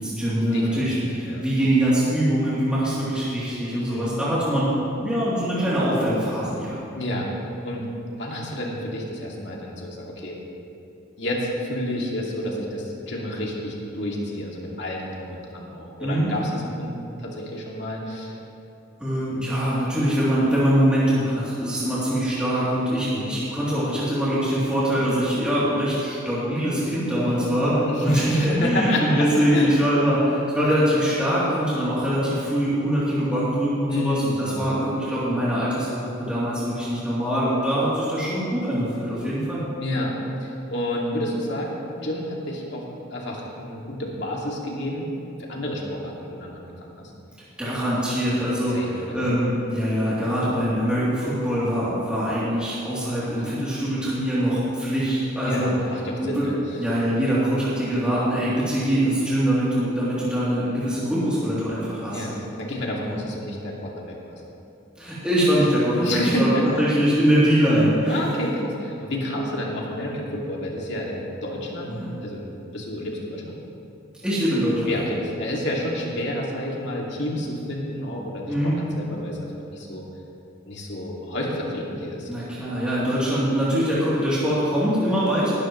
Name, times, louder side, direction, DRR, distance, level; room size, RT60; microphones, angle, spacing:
voice 1, 0.0-4.7 5.0-6.8 16.0-16.3 19.0-39.6 47.6-55.7 56.2-56.5 56.8-62.2 63.0-63.2 65.0-66.5 66.8-68.2 71.9-72.1 74.2-74.9 78.5-78.8 82.3-85.5, equal, 5° right, -11 dB, 3.1 m, -23 dB
voice 2, 0.5-1.4 3.7-4.2 7.0-7.3 7.6-7.8 8.2-10.4 11.2-18.4 23.0-23.3 27.8-29.3 29.5-29.7 33.9-34.7 39.8-40.1 40.4-42.9 43.1-45.1 45.4-47.1 48.7-49.2 53.4-53.8 55.4-56.5 62.1-64.4 66.0-66.8 68.0-73.5 74.9-80.0 80.7-82.3, left 1 dB, 60° left, -2 dB, 2.4 m, -30 dB
18.5 x 13.0 x 3.2 m, 2.8 s
head